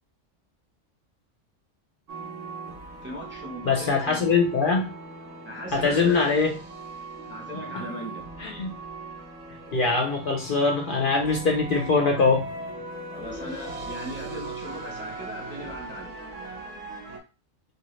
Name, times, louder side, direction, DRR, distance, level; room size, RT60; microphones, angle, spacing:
sound 1, 2.1-17.2, right 2 dB, 90° right, 1.0 m, -39 dB
voice 1, 3.0-4.3 5.5-6.3 7.3-8.2 13.1-16.1, equal, 10° right, -2 dB, 0.6 m, -38 dB
voice 2, 3.6-4.9 5.7-6.6 8.4-8.7 9.7-12.5, left 4 dB, 55° left, 0 dB, 0.6 m, -22 dB
2.9 x 2.3 x 3.0 m, 0.31 s
omnidirectional pair, 1.2 m